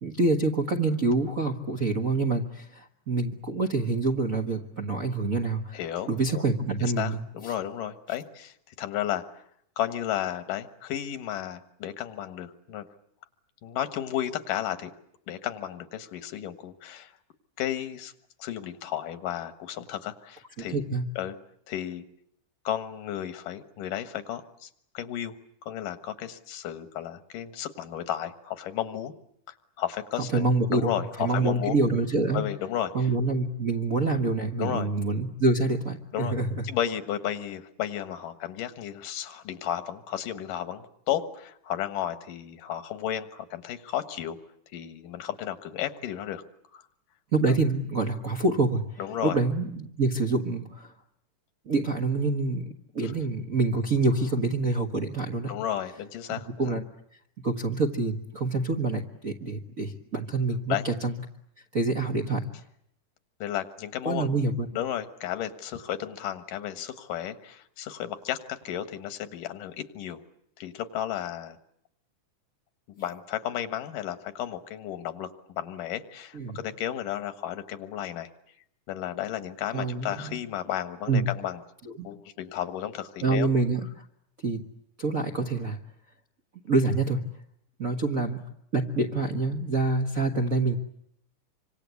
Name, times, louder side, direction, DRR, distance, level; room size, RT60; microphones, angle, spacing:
voice 1, 0.0-5.8 6.1-7.5 20.6-21.0 30.3-32.4 32.9-36.6 47.3-50.9 51.6-55.5 56.3-56.8 57.4-61.2 61.7-62.4 64.0-64.7 76.3-76.6 79.7-80.4 81.1-81.2 82.0-82.1 83.2-84.0 84.4-84.6 85.0-85.8 86.6-87.2 87.8-88.4 88.7-90.8, right 3 dB, 45° right, 2 dB, 1.1 m, -26 dB
voice 2, 5.7-6.4 6.8-9.4 9.8-12.9 13.6-14.9 15.3-17.1 17.6-18.1 18.4-20.9 21.2-21.4 21.7-22.0 22.6-24.7 24.9-25.3 25.6-29.1 29.5-31.8 32.3-33.1 34.6-34.9 36.1-36.3 36.6-44.4 44.7-46.4 46.7-46.8 49.0-49.4 53.0-53.1 55.5-56.8 60.7-60.9 63.4-64.3 64.7-70.2 70.6-71.6 72.9-78.3 78.9-81.6 82.0-83.5, left 11 dB, 80° left, 10 dB, 3.0 m, -33 dB
26.5 x 25.5 x 8.3 m, 0.73 s
omnidirectional pair, 3.7 m